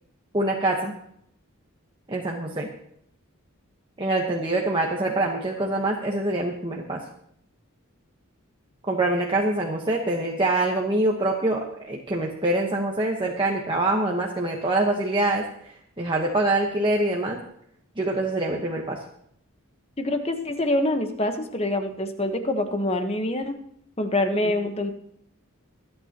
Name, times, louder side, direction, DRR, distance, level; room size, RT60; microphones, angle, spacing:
voice 1, 0.3-0.9 2.1-2.7 4.0-7.0 8.9-17.4 18.0-19.0 24.3-24.5, right 2 dB, 25° right, -1 dB, 1.2 m, -25 dB
voice 2, 20.0-23.6 24.0-24.9, left 1 dB, 30° left, 6 dB, 1.2 m, -25 dB
24.5 x 8.9 x 3.0 m, 0.70 s
head